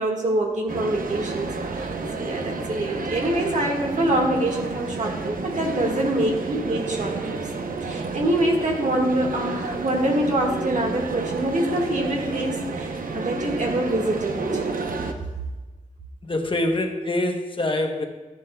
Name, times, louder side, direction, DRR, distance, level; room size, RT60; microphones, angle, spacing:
voice 1, 0.0-1.9 2.2-7.4 7.8-14.7 15.2-15.3, right 1 dB, 60° right, 0 dB, 1.6 m, -25 dB
sound 1, 0.7-15.1, right 3 dB, 85° right, 0.7 m, -30 dB
voice 2, 16.2-18.0, left 1 dB, 40° left, 4 dB, 0.9 m, -25 dB
13.0 x 10.0 x 2.3 m, 1.2 s
wide cardioid pair, 110°, 14 cm